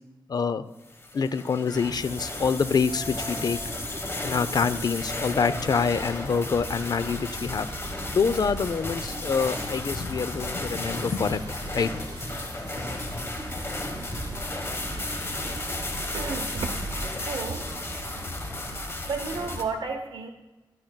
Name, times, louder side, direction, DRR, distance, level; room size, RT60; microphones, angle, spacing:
voice 1, 0.3-0.6 1.1-3.6 4.2-7.7 8.1-11.9, left 5 dB, 55° left, 13 dB, 0.4 m, -26 dB
sound 1, 0.9-19.6, left 2 dB, 30° left, 1.1 m, -34 dB
sound 2, 1.7-18.8, right 2 dB, 60° right, 1.7 m, -42 dB
voice 2, 16.1-16.7 17.2-17.6 18.8-20.3, right 4 dB, 85° right, 1 dB, 0.7 m, -32 dB
13.0 x 10.0 x 2.2 m, 1.1 s
wide cardioid pair, 105°, 8 cm